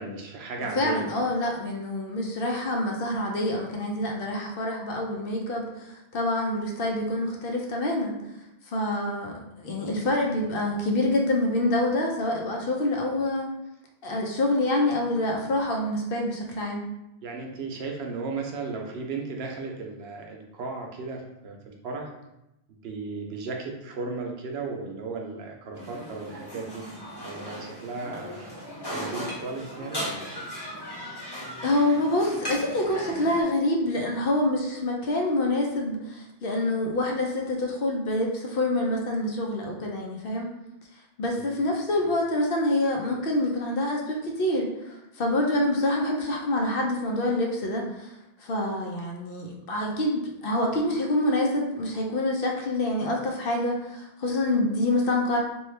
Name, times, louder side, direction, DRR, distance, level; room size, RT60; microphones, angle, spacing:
voice 1, 0.0-1.1 17.2-22.1 22.7-26.8 27.2-28.5 28.9-30.4 41.3-41.5 42.0-42.1, right 4 dB, 75° right, 1 dB, 0.8 m, -35 dB
voice 2, 0.8-8.2 8.7-13.5 14.0-16.8 31.6-40.5 41.2-48.1 48.4-55.4, left 1 dB, 65° left, 0 dB, 0.7 m, -26 dB
sound 1, 25.7-33.4, equal, 25° left, 0.9 m, -37 dB
3.0 x 2.3 x 3.2 m, 0.89 s
omnidirectional pair, 1.1 m